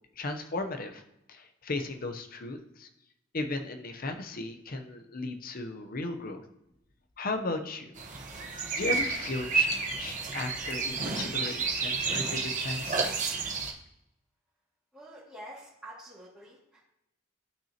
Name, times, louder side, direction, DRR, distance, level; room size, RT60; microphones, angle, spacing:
voice 1, 0.2-1.0 1.3-2.9 3.3-6.4 7.2-8.0 8.7-13.1, left 2 dB, 45° left, 6 dB, 0.8 m, -36 dB
sound 1, 8.0-13.7, right 4 dB, 40° right, 1.1 m, -31 dB
voice 2, 14.9-16.8, right 1 dB, 5° right, -11 dB, 2.2 m, -47 dB
13.0 x 6.1 x 2.9 m, 0.86 s
head